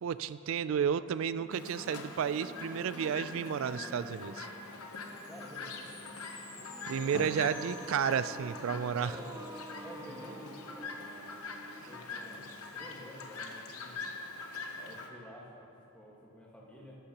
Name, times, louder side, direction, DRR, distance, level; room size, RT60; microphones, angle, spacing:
voice 1, 0.0-4.5 6.3-6.4 6.9-9.1, right 7 dB, 65° right, 14 dB, 0.3 m, -32 dB
sound 1, 1.3-12.7, right 1 dB, 15° right, 0.5 m, -49 dB
Chirp tweet, 1.5-15.1, left 3 dB, 85° left, 0.9 m, -44 dB
Chime, 4.9-8.6, left 2 dB, 35° left, 2.8 m, -53 dB
voice 2, 5.2-6.0 7.1-7.3 9.0-9.3 9.8-11.2 11.9-14.0 14.7-17.0, equal, 5° left, -4 dB, 1.5 m, -51 dB
15.0 x 11.5 x 3.0 m, 2.7 s
head